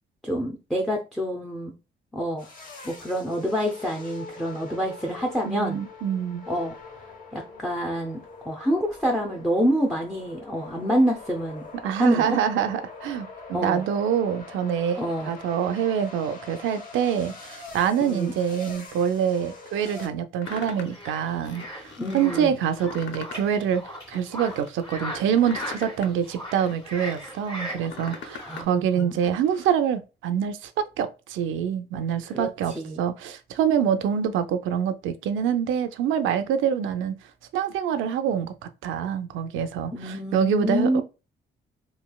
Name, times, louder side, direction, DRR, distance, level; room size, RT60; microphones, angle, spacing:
voice 1, 0.2-1.7 2.1-2.5 2.8-5.8 6.5-6.8 7.3-11.7 12.0-12.4 13.5-13.8 15.0-15.3 18.0-18.4 22.0-22.6 28.4-29.2 32.3-33.0 39.9-41.0, equal, ahead, 0.5 m, -27 dB
sound 1, 2.4-20.1, left 4 dB, 45° left, 1.0 m, -43 dB
voice 2, 5.4-6.5 11.8-37.2 37.5-38.5 38.8-41.0, right 8 dB, 80° right, 0.5 m, -26 dB
sound 2, 20.4-21.0 21.4-22.2 22.7-23.5 23.8-24.7 25.2-27.3 27.7-28.7 29.0-29.7, left 6 dB, 70° left, 0.6 m, -42 dB
sound 3, 20.4-28.6, equal, 25° left, 1.6 m, -39 dB
3.1 x 2.8 x 2.2 m
cardioid pair, 90°, 20 cm